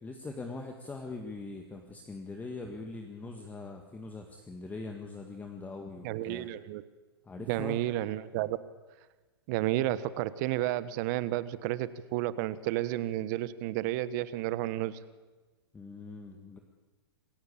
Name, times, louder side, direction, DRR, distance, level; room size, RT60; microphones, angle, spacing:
voice 1, 0.0-6.5 7.3-7.8 15.7-16.6, left 3 dB, 10° left, 3 dB, 1.9 m, -42 dB
voice 2, 6.0-6.8 7.5-8.6 9.5-15.0, right 15 dB, 45° right, 15 dB, 1.3 m, -31 dB
27.0 x 16.5 x 8.6 m, 1.2 s
hypercardioid pair, 120°, 14 cm